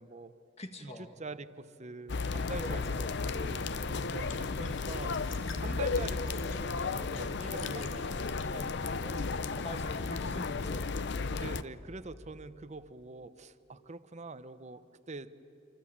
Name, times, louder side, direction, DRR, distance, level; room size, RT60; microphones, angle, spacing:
voice 1, 0.0-0.4 0.8-2.9 3.4-3.7 4.1-9.4 11.3-15.3, right 3 dB, 35° right, 13 dB, 0.9 m, -45 dB
voice 2, 0.6-1.1 2.6-3.2 7.7-8.1 9.5-11.0, left 1 dB, 35° left, 6 dB, 1.7 m, -44 dB
sound 1, 2.1-11.6, left 4 dB, 60° left, 0.7 m, -34 dB
sound 2, 3.7-9.6, left 5 dB, 80° left, 2.5 m, -53 dB
27.5 x 24.5 x 8.8 m, 2.9 s
head